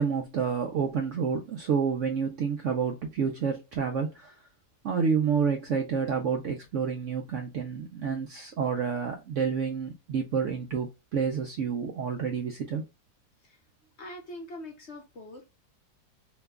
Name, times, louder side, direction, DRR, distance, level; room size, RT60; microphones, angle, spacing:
voice 1, 0.0-4.3 4.8-12.8, right 6 dB, 65° right, 0.7 m, -29 dB
voice 2, 14.0-15.5, left 1 dB, 55° left, 0.8 m, -43 dB
3.0 x 2.2 x 3.4 m
omnidirectional pair, 1.7 m